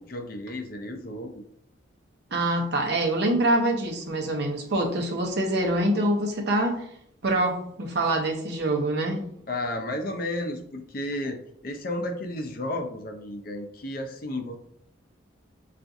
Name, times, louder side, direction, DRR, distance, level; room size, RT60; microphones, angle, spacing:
voice 1, 0.1-1.4 9.5-14.6, left 1 dB, 45° left, 3 dB, 0.5 m, -33 dB
voice 2, 2.3-6.8 7.2-9.2, right 1 dB, 55° right, 1 dB, 0.7 m, -25 dB
5.7 x 2.4 x 2.6 m, 0.70 s
head